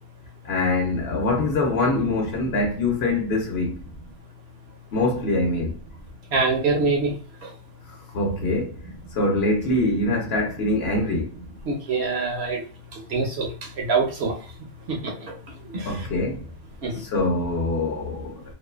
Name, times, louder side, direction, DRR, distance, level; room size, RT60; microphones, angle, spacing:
voice 1, 0.4-3.8 4.9-5.8 7.9-8.8 9.1-11.3 15.8-16.4 16.9-18.4, left 2 dB, 60° left, 0.9 m, -24 dB
voice 2, 6.3-7.1 11.7-12.6 13.1-13.5 13.8-14.3 14.9-15.1 15.7-15.8 16.8-16.9, right 4 dB, 60° right, 0.8 m, -23 dB
2.5 x 2.3 x 2.3 m
omnidirectional pair, 1.3 m